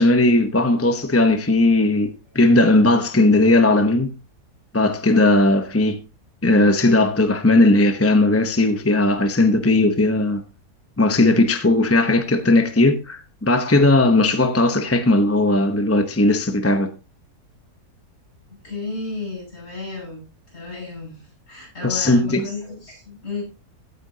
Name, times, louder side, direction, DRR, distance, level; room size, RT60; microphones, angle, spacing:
voice 1, 0.0-4.1 4.7-6.0 6.4-10.4 11.0-16.9 21.8-22.4, left 2 dB, 15° left, 0.6 m, -17 dB
voice 2, 18.5-23.4, left 3 dB, 40° left, 8.4 m, -33 dB
15.5 x 9.6 x 2.8 m
omnidirectional pair, 1.7 m